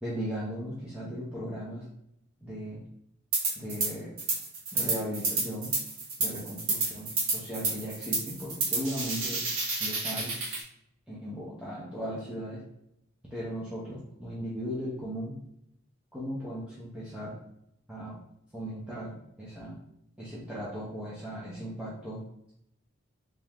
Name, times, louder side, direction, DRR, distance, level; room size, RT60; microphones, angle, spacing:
voice 1, 0.0-1.8 2.4-2.8 3.5-4.1 4.7-5.7 6.2-9.4 9.8-10.3 11.1-12.6 13.3-15.3 16.1-17.3 17.9-18.2 18.5-19.8 20.2-22.5, equal, 5° right, -8 dB, 0.7 m, -37 dB
sound 1, 3.3-3.9 4.2-10.6, right 3 dB, 70° right, 1.3 m, -30 dB
3.4 x 3.0 x 3.5 m, 0.77 s
head